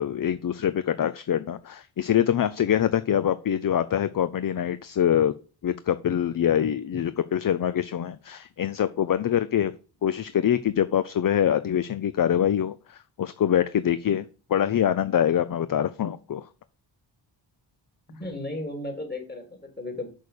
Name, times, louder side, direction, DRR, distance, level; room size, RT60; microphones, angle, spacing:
voice 1, 0.0-5.3 5.6-9.7 10.0-14.2 14.5-16.5, left 10 dB, 45° left, 13 dB, 0.6 m, -24 dB
voice 2, 18.1-20.1, left 2 dB, 20° left, 4 dB, 3.5 m, -35 dB
6.6 x 6.4 x 6.8 m, 0.35 s
cardioid pair, 95°, 46 cm